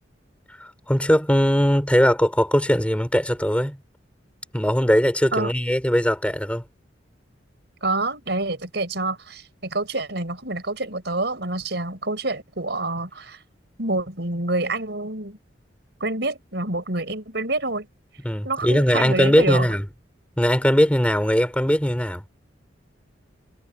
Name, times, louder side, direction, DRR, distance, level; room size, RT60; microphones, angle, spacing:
voice 1, 0.6-3.8 4.5-6.6 18.2-19.8 20.4-22.2, equal, 5° left, 4.6 m, -20 dB
voice 2, 7.8-13.4 13.8-15.4 16.0-17.9 18.4-19.7, right 2 dB, 60° right, 5.5 m, -27 dB
head